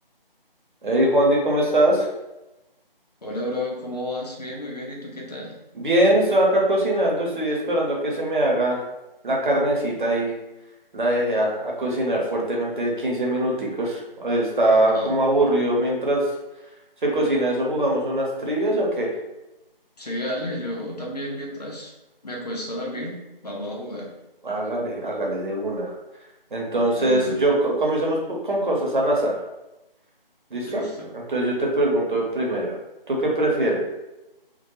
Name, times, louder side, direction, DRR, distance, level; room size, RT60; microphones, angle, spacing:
voice 1, 0.8-2.1 5.7-8.8 9.2-10.3 10.9-16.2 17.0-19.1 24.4-25.9 26.5-29.3 30.5-30.8 31.1-32.8 33.1-33.8, right 1 dB, 60° right, -2 dB, 0.8 m, -22 dB
voice 2, 3.2-5.5 14.9-15.4 20.0-21.9 22.2-24.1 26.9-27.4 30.6-31.1, left 1 dB, 45° left, -3 dB, 0.6 m, -32 dB
2.2 x 2.2 x 2.9 m, 0.97 s
figure-of-eight pair, 170°, 29 cm